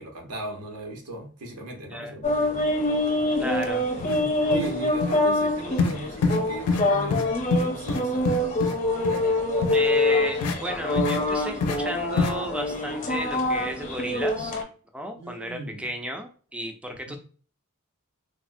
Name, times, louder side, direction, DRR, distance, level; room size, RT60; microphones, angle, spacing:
voice 1, 0.0-2.7 4.2-8.4 15.2-15.9 17.1-17.2, right 1 dB, 85° right, 2 dB, 0.8 m, -38 dB
sound 1, 2.2-14.6, left 1 dB, 35° left, 0.6 m, -25 dB
voice 2, 3.4-3.8 9.7-14.5 14.9-17.2, equal, 5° right, 4 dB, 0.3 m, -33 dB
sound 2, 3.6-3.7 4.0-4.2 4.5-4.7 5.0-5.2 5.8-5.9 6.2-6.4 6.7-6.8 7.1-7.2 7.5-8.7 9.0-9.2 9.6-9.8 10.4-10.6 10.9-11.2 11.6-11.8 12.2-12.3, left 4 dB, 75° left, 0.4 m, -25 dB
3.3 x 2.0 x 2.5 m, 0.41 s
head